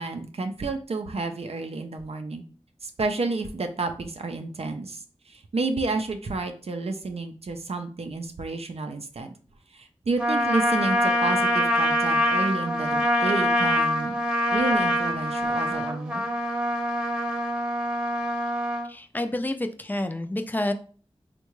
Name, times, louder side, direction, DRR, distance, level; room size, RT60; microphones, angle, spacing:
voice 1, 0.0-2.4 2.8-9.3 9.7-14.2 14.5-16.3, right 3 dB, 65° right, 6 dB, 0.4 m, -30 dB
Trumpet, 10.2-18.9, left 1 dB, 10° right, 0.8 m, -24 dB
voice 2, 18.8-20.7, left 1 dB, 15° left, 7 dB, 0.4 m, -29 dB
3.6 x 2.2 x 3.0 m, 0.41 s
wide cardioid pair, 50°, 11 cm